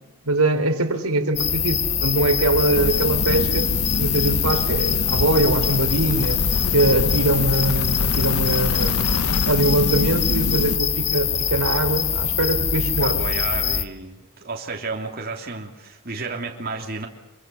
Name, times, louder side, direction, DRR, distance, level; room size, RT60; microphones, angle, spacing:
voice 1, 0.3-3.7 4.0-6.4 6.7-13.2, right 2 dB, 80° right, 6 dB, 3.5 m, -22 dB
sound 1, 1.4-13.8, left 7 dB, 30° left, 1.5 m, -23 dB
sound 2, 2.7-10.8, left 3 dB, 75° left, 0.8 m, -26 dB
voice 2, 13.0-17.1, right 3 dB, 45° right, 1 dB, 3.2 m, -32 dB
25.5 x 24.5 x 7.0 m, 0.93 s
head